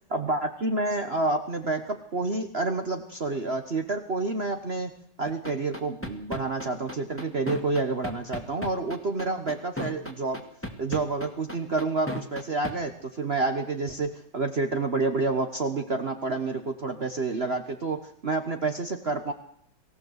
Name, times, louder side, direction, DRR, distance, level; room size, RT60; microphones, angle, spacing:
voice 1, 0.1-4.9 5.2-10.4 10.8-19.3, right 3 dB, 40° right, 6 dB, 1.3 m, -29 dB
sound 1, 5.3-12.7, left 1 dB, 5° left, 2.1 m, -34 dB
23.0 x 15.5 x 8.1 m, 0.70 s
omnidirectional pair, 1.9 m